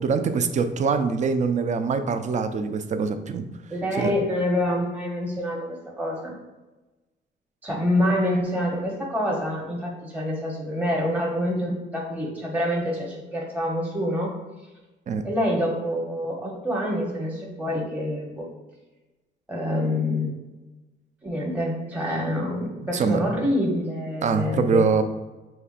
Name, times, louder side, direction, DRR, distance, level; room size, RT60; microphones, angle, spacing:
voice 1, 0.0-3.5 4.0-4.1 15.1-15.2 22.9-23.2 24.2-25.0, right 5 dB, 40° right, 9 dB, 0.4 m, -23 dB
voice 2, 3.7-6.3 7.6-14.3 15.2-18.5 19.5-20.3 21.2-25.0, left 1 dB, 10° right, -3 dB, 0.9 m, -26 dB
5.5 x 3.4 x 2.4 m, 1.1 s
cardioid pair, 90°, 20 cm